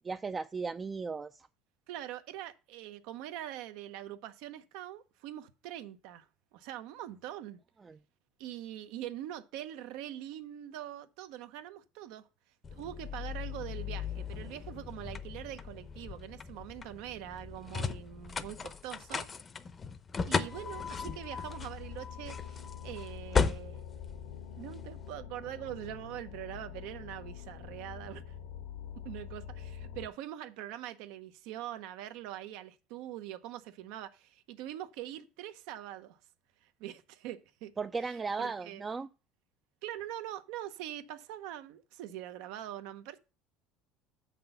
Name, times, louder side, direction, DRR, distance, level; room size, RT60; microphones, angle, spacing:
voice 1, 0.0-1.5 7.8-8.0 37.8-39.1, right 4 dB, 20° right, 0.4 m, -36 dB
voice 2, 1.9-7.6 8.4-12.3 12.7-19.3 20.3-23.8 24.6-28.3 29.0-36.2 36.6-37.8 38.1-38.8 39.8-43.2, right 12 dB, 75° right, 0.8 m, -43 dB
sound 1, 12.6-25.0, left 5 dB, 30° left, 0.7 m, -37 dB
sound 2, 20.5-30.1, left 8 dB, 85° left, 1.3 m, -45 dB
7.0 x 6.0 x 5.4 m
supercardioid pair, 110°, 0 cm